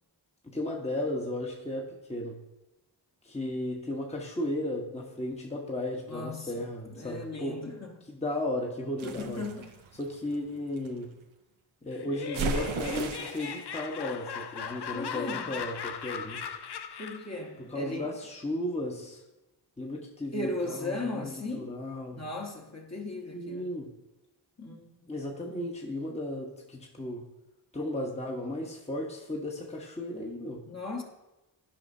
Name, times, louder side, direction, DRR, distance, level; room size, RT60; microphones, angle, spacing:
voice 1, 0.4-2.3 3.2-7.6 8.1-9.5 10.0-11.1 11.8-16.4 17.7-19.2 19.8-22.2 23.3-23.9 25.1-27.2 27.7-30.6, left 1 dB, 15° left, 1.0 m, -35 dB
voice 2, 6.1-6.5 6.9-8.0 9.0-9.8 14.9-15.6 17.0-18.1 20.3-21.7 22.1-23.7 24.6-25.5 30.7-31.0, left 2 dB, 35° left, 1.3 m, -37 dB
sound 1, 9.0-10.9 12.3-13.6, right 4 dB, 90° right, 0.7 m, -35 dB
Laughter, 11.9-17.4, left 6 dB, 60° left, 0.6 m, -38 dB
11.5 x 5.0 x 2.7 m
cardioid pair, 45°, 46 cm